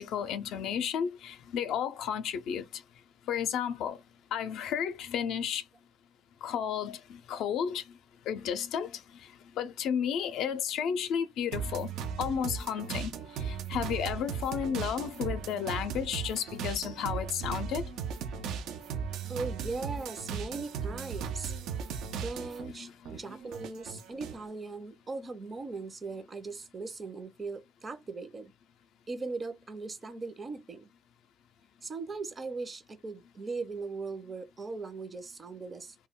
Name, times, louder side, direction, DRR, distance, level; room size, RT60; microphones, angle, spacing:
voice 1, 0.0-2.6 3.3-4.0 4.3-5.6 6.4-7.8 8.3-9.0 9.6-11.9 12.2-13.1 13.4-17.8 22.8-23.2, left 8 dB, 85° left, 0.4 m, -32 dB
sound 1, 11.5-22.7 23.0-24.4, right 6 dB, 90° right, 0.4 m, -37 dB
voice 2, 19.3-21.5 22.2-28.5 29.1-30.9 31.8-36.1, right 3 dB, 35° right, 0.6 m, -39 dB
2.2 x 2.1 x 3.5 m
cardioid pair, 90°, 0 cm